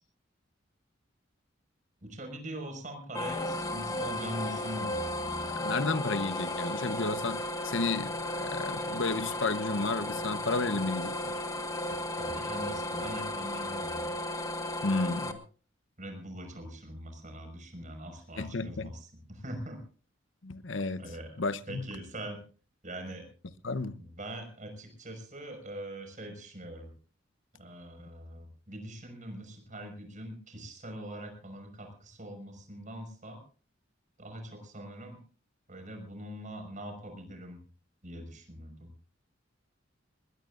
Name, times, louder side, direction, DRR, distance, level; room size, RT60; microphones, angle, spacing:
voice 1, 2.0-5.5 12.2-14.1 16.0-19.8 21.0-22.4 22.8-23.3 23.9-26.9 27.6-33.4 34.2-35.2 35.7-37.6 38.0-38.9, right 1 dB, 40° right, 5.7 m, -42 dB
sound 1, 3.1-15.3, left 1 dB, 20° left, 1.5 m, -34 dB
voice 2, 5.5-11.3 14.8-15.4 18.4-18.9 20.4-21.8 23.6-24.0, left 3 dB, 70° left, 0.9 m, -32 dB
21.0 x 20.5 x 2.6 m
head